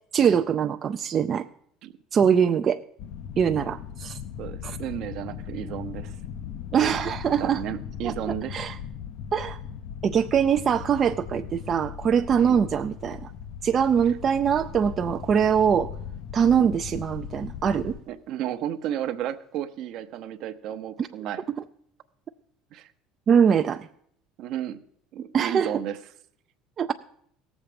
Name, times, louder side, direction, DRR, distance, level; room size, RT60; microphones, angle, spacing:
voice 1, 0.1-1.5 2.1-2.8 3.4-4.2 4.6-4.8 6.7-7.6 8.0-8.8 9.3-9.6 10.0-13.3 13.6-15.9 16.3-18.0 21.0-21.1 23.3-23.9 25.3-25.7 26.8-26.9, right 7 dB, 40° right, 7 dB, 0.4 m, -23 dB
Raging thunderstorm, 3.0-18.0, left 8 dB, 65° left, 0.7 m, -38 dB
voice 2, 4.4-6.2 7.4-8.7 12.4-12.6 16.6-16.7 18.1-21.4 22.7-22.9 24.4-24.8 25.1-26.0, right 11 dB, 60° right, 10 dB, 0.8 m, -33 dB
17.0 x 7.2 x 5.1 m, 0.67 s
supercardioid pair, 100°, 0 cm